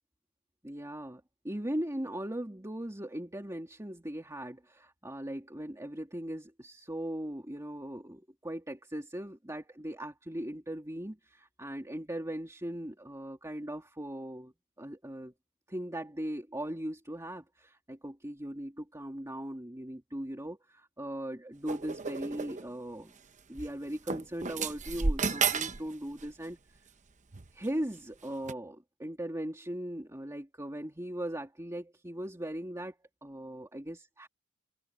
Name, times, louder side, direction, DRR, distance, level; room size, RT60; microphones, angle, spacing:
voice 1, 0.6-15.3 15.7-23.1 23.5-26.6 27.5-33.0 33.2-34.3, right 1 dB, 15° right, 2.5 m, -39 dB
sound 1, 21.7-22.7 23.5-23.7 24.1-25.9 26.1-26.5 27.3-27.7 28.4-28.5, right 5 dB, 35° right, 0.8 m, -32 dB
head